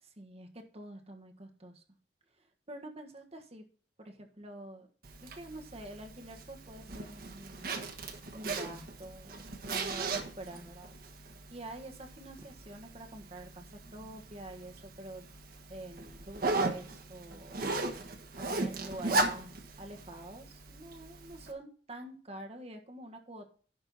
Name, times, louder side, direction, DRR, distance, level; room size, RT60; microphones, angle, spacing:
voice 1, 0.0-1.8 2.4-3.6 4.0-4.9 5.2-7.7 8.3-10.9 11.5-15.3 15.7-17.6 18.4-23.5, right 1 dB, 35° right, 3 dB, 1.5 m, -47 dB
Zipper (clothing), 5.0-21.5, right 2 dB, 55° right, 1.2 m, -38 dB
11.0 x 4.5 x 5.6 m, 0.42 s
head